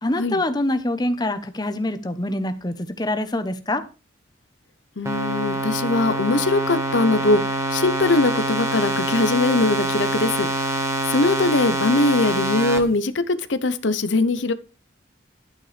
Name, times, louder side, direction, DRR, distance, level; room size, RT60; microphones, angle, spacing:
voice 1, 0.0-3.8, left 1 dB, 20° left, 0.9 m, -25 dB
voice 2, 5.0-7.4 7.7-10.5 11.1-14.5, left 2 dB, 70° left, 0.8 m, -21 dB
sound 1, 5.1-12.8, right 1 dB, 15° right, 1.7 m, -25 dB
11.5 x 9.2 x 3.3 m
head